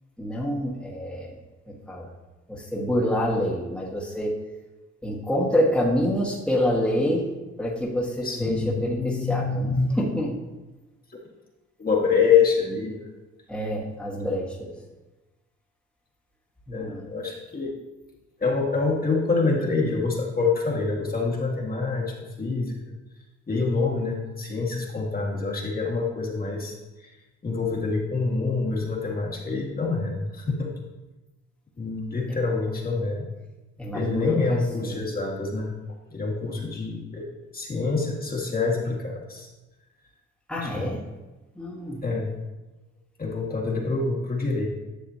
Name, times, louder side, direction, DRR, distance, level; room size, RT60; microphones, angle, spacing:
voice 1, 0.2-1.4 1.7-2.1 2.5-4.4 5.0-7.3 7.6-10.4 13.5-14.7 16.7-17.0 33.8-35.1 40.5-41.1 41.5-42.0, equal, 5° left, -5 dB, 1.6 m, -27 dB
voice 2, 8.2-9.9 11.1-11.2 11.8-13.1 16.7-17.7 18.4-22.8 23.5-27.1 27.4-30.8 31.8-33.3 33.9-35.7 36.1-37.2 37.5-39.5 40.6-40.7 42.0-42.3 43.2-44.7, left 4 dB, 30° left, -3 dB, 1.8 m, -26 dB
10.5 x 6.6 x 2.8 m, 1.1 s
cardioid pair, 90°, 30 cm